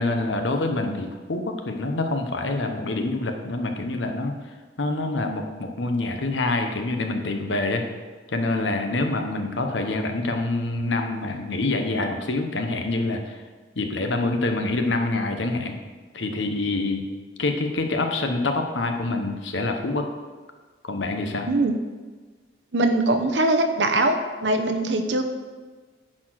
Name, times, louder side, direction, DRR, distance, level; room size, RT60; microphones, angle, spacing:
voice 1, 0.0-4.3 4.8-7.8 8.3-13.3 13.8-15.8 16.1-17.0 17.4-20.1 20.8-21.5, left 2 dB, 80° left, 5 dB, 1.0 m, -26 dB
voice 2, 21.5-21.8 22.7-24.2 24.4-25.2, right 2 dB, 70° right, 7 dB, 0.9 m, -21 dB
9.9 x 4.4 x 6.4 m, 1.4 s
head